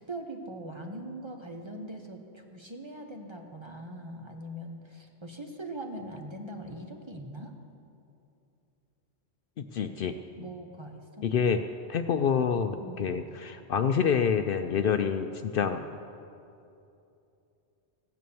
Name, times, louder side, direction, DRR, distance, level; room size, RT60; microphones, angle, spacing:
voice 1, 0.1-7.5 10.4-11.3 12.8-13.1, right 1 dB, 25° right, 3 dB, 1.0 m, -41 dB
voice 2, 9.6-10.5 11.2-11.6 11.9-15.9, left 7 dB, 60° left, 8 dB, 0.7 m, -27 dB
15.5 x 9.3 x 7.0 m, 2.7 s
omnidirectional pair, 1.1 m